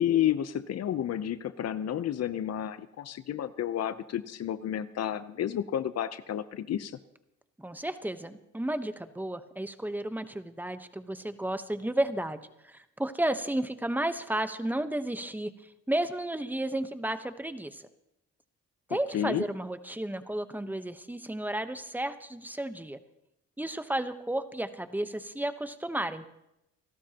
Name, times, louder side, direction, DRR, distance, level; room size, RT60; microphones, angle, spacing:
voice 1, 0.0-7.0 18.9-19.4, left 10 dB, 55° left, 14 dB, 0.7 m, -31 dB
voice 2, 7.6-17.9 18.9-23.0 23.6-26.2, right 1 dB, 5° right, 10 dB, 1.0 m, -33 dB
27.5 x 13.0 x 2.9 m, 0.85 s
cardioid pair, 90°, 30 cm